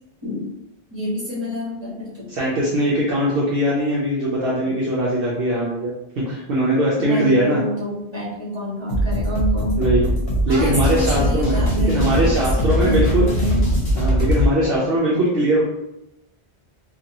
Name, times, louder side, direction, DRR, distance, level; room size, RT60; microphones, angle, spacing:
voice 1, 0.9-2.3 4.6-4.7 7.0-10.0 10.5-13.6, equal, 25° right, -7 dB, 1.3 m, -27 dB
voice 2, 2.3-7.6 9.8-10.1 10.4-11.6 11.8-13.3 14.0-15.6, right 1 dB, 65° right, -5 dB, 0.8 m, -21 dB
sound 1, 8.9-14.5, equal, 70° left, 1.1 m, -20 dB
2.7 x 2.6 x 2.8 m, 0.86 s
omnidirectional pair, 1.1 m